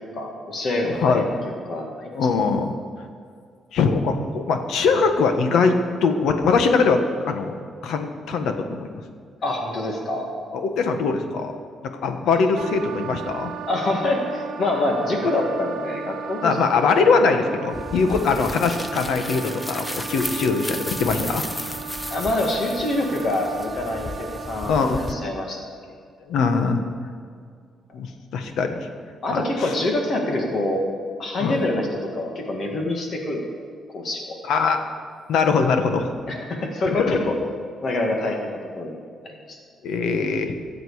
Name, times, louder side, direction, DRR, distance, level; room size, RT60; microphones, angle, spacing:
voice 1, 0.1-2.1 9.4-10.3 13.7-16.6 22.1-25.6 29.2-30.8 31.2-33.5 33.9-34.4 36.3-37.3 37.8-39.0 39.2-39.6, left 2 dB, 45° left, 1 dB, 1.9 m, -26 dB
voice 2, 2.1-2.7 3.7-5.8 6.0-7.0 7.3-7.5 7.8-9.0 10.5-11.6 11.8-13.5 16.4-21.4 24.7-25.0 26.3-26.8 27.9-28.1 28.3-28.9 29.3-29.4 31.4-31.6 34.4-34.8 35.3-36.1 36.9-37.2 39.8-40.5, left 4 dB, 85° left, 6 dB, 1.3 m, -21 dB
Wind instrument woodwind instrument, 12.6-25.5, right 8 dB, 85° right, 0.7 m, -36 dB
sound 1, 17.7-25.1, left 1 dB, 10° left, 0.6 m, -34 dB
22.5 x 7.9 x 4.8 m, 2.1 s
cardioid pair, 135°, 0 cm